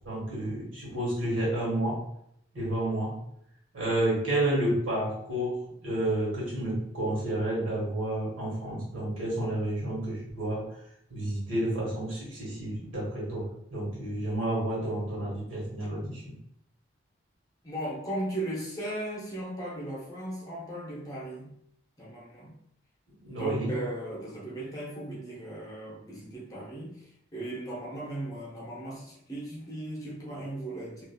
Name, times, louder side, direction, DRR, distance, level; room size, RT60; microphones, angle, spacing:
voice 1, 0.0-2.0 2.5-3.1 3.7-10.6 11.1-16.3 23.2-23.7, right 1 dB, 80° right, -5 dB, 1.5 m, -30 dB
voice 2, 17.6-21.5 22.0-22.5 23.3-31.0, right 1 dB, 20° left, -5 dB, 0.6 m, -37 dB
2.6 x 2.4 x 2.3 m, 0.73 s
head